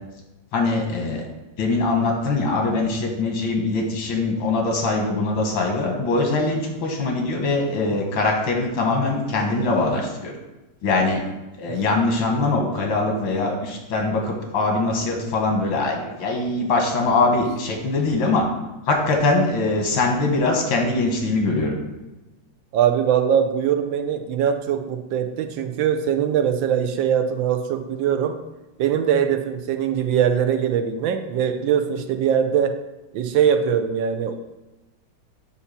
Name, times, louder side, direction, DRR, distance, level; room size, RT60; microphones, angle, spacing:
voice 1, 0.5-1.3 1.6-10.3 10.8-11.2 11.6-18.4 18.9-21.8, left 3 dB, 90° left, 1 dB, 2.1 m, -22 dB
voice 2, 22.7-28.4 28.8-32.8 33.1-34.3, right 8 dB, 85° right, 7 dB, 1.4 m, -21 dB
8.4 x 2.8 x 5.7 m, 1.0 s
omnidirectional pair, 2.1 m